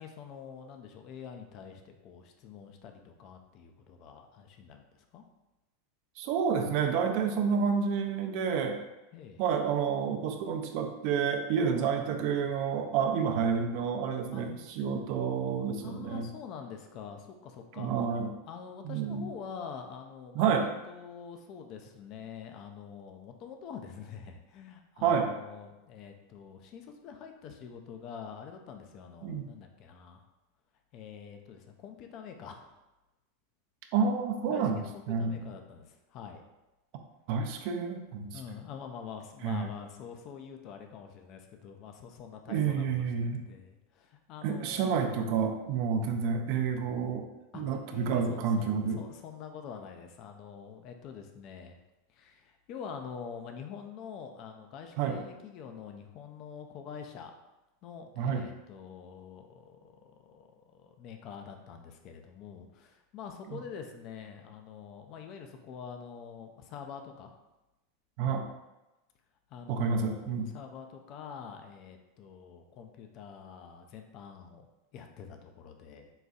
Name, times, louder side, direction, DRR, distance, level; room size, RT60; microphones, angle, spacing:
voice 1, 0.0-5.2 9.1-9.4 11.8-11.9 14.3-14.4 15.8-18.0 18.5-30.2 30.9-32.8 34.5-36.4 38.3-45.0 47.5-51.8 52.1-57.3 57.8-67.3 69.5-74.7 74.9-76.1, left 7 dB, 50° left, 5 dB, 0.5 m, -46 dB
voice 2, 6.2-8.8 9.4-16.3 17.8-18.3 18.8-19.3 20.3-20.7 25.0-25.3 29.2-29.5 33.9-35.5 37.3-38.4 39.4-39.7 42.5-43.4 44.4-47.3 47.5-49.0 55.0-55.2 58.2-58.5 63.5-63.6 68.2-68.4 69.7-70.5, right 6 dB, 60° right, 4 dB, 0.5 m, -29 dB
3.9 x 2.3 x 3.9 m, 1.0 s
hypercardioid pair, 105°, 0 cm